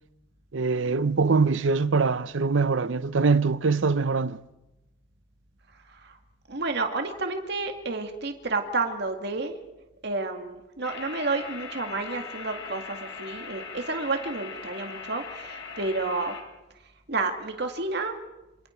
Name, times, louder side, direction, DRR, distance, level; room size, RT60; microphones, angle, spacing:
voice 1, 0.5-4.4, right 4 dB, 75° right, 0.7 m, -23 dB
voice 2, 6.5-9.6 10.0-16.3 17.1-18.1, right 3 dB, 60° right, 2.1 m, -30 dB
sound 1, 10.8-16.4, left 5 dB, 65° left, 3.7 m, -40 dB
27.5 x 27.0 x 4.5 m
head